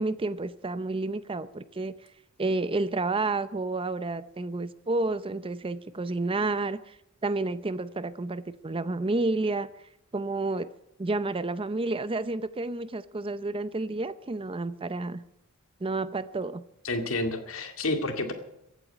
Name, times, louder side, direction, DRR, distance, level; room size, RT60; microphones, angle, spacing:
voice 1, 0.0-1.9 2.4-7.0 7.2-9.7 10.1-10.7 11.0-15.2 15.8-16.6, right 2 dB, 25° right, 15 dB, 0.6 m, -30 dB
voice 2, 16.8-18.3, left 2 dB, 70° left, 6 dB, 2.2 m, -29 dB
15.0 x 9.0 x 9.9 m, 0.83 s
head